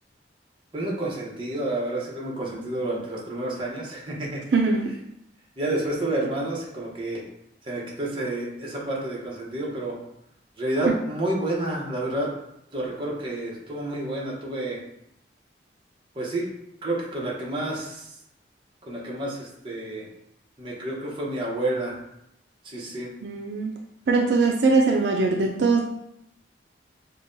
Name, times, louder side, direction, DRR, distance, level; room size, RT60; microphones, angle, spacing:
voice 1, 0.7-4.4 5.6-7.2 7.6-10.0 10.6-12.3 12.7-14.8 16.1-16.5 16.8-18.2 18.8-20.1 20.6-22.0 22.6-23.1, right 1 dB, 30° right, -4 dB, 0.9 m, -29 dB
voice 2, 23.2-23.7 24.1-25.8, right 3 dB, 70° right, 1 dB, 0.4 m, -21 dB
5.4 x 2.2 x 2.6 m, 0.78 s
head